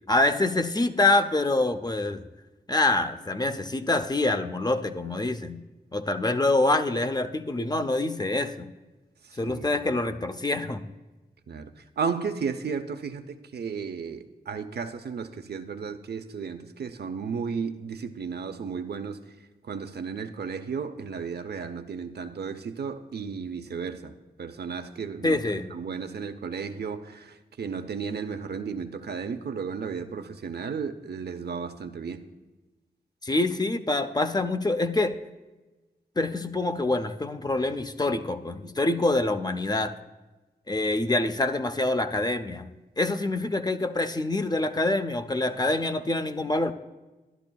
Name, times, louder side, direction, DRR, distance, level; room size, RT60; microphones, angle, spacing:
voice 1, 0.1-2.2 2.7-5.6 5.9-8.7 9.4-10.8 25.2-25.7 33.2-35.1 36.2-39.9 40.7-42.7 43.0-46.7, left 2 dB, 25° left, 8 dB, 0.5 m, -26 dB
voice 2, 9.2-9.7 11.5-19.2 19.6-24.1 24.4-32.2, right 6 dB, 75° right, 7 dB, 0.6 m, -34 dB
12.0 x 11.5 x 2.2 m, 1.1 s
wide cardioid pair, 65°, 17 cm